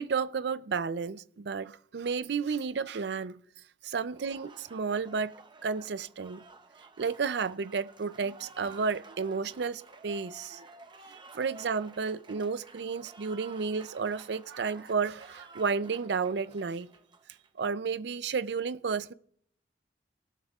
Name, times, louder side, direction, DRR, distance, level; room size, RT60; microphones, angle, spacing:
voice 1, 0.0-3.4 3.8-6.4 7.0-10.7 11.3-16.9 17.6-19.1, right 5 dB, 65° right, 0.5 m, -32 dB
Applause, 4.1-17.6, right 3 dB, 25° right, 0.7 m, -53 dB
18.5 x 12.0 x 2.4 m
head